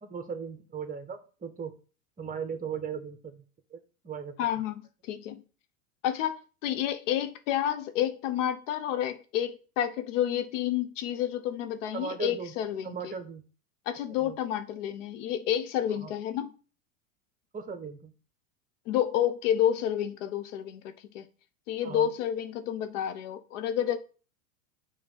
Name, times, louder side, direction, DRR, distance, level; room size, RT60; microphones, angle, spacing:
voice 1, 0.0-1.7 2.2-3.4 3.7-3.8 4.0-4.3 11.9-12.5 12.8-13.4 14.2-14.4 16.0-16.1 17.5-18.1 21.8-22.1, right 6 dB, 20° right, 1.1 m, -37 dB
voice 2, 4.4-4.8 5.1-5.4 6.0-13.1 13.9-16.5 18.9-21.2 21.7-24.0, left 10 dB, 60° left, 0.9 m, -30 dB
7.0 x 3.1 x 5.5 m
hypercardioid pair, 100°, 41 cm